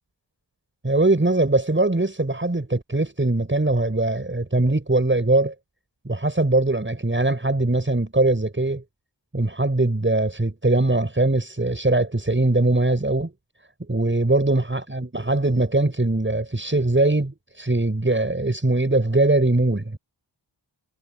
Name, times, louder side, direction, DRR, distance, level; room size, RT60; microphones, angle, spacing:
voice 1, 0.8-5.5 6.0-8.8 9.3-13.3 13.9-20.0, right 2 dB, 25° right, 7.7 m, -21 dB
wide cardioid pair, 65°, 44 cm